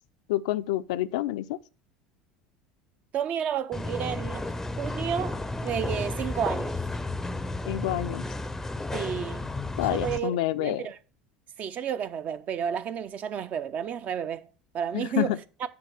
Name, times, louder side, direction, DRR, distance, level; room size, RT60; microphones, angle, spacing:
voice 1, 0.3-1.6 7.7-8.2 9.8-10.9 14.9-15.4, left 14 dB, 60° left, 0.4 m, -28 dB
voice 2, 3.1-4.5 4.8-6.8 8.9-9.5 9.8-11.0 11.6-14.5 14.7-15.4, right 8 dB, 40° right, 0.6 m, -31 dB
sound 1, 3.7-10.2, left 2 dB, 10° left, 0.6 m, -32 dB
9.6 x 3.7 x 6.4 m
figure-of-eight pair, 70°, 4 cm